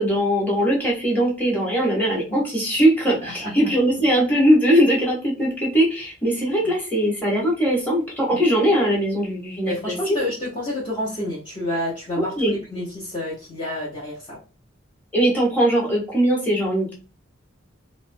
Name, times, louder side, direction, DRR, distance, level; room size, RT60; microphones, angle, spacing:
voice 1, 0.0-10.2 12.2-12.5 15.1-16.9, equal, 10° left, -4 dB, 1.1 m, -20 dB
voice 2, 3.2-3.5 6.6-6.7 9.7-14.4, left 1 dB, 25° left, -8 dB, 0.8 m, -29 dB
3.2 x 2.0 x 2.6 m, 0.33 s
head